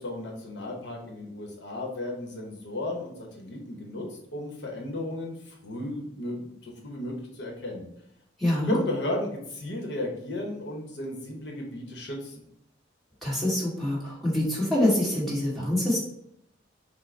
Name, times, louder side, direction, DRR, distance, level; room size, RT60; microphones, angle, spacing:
voice 1, 0.0-7.9 8.5-12.4, left 1 dB, 70° left, 0 dB, 0.9 m, -34 dB
voice 2, 8.4-8.8 13.2-16.1, left 1 dB, ahead, -7 dB, 1.5 m, -25 dB
6.0 x 2.1 x 3.2 m, 0.74 s
head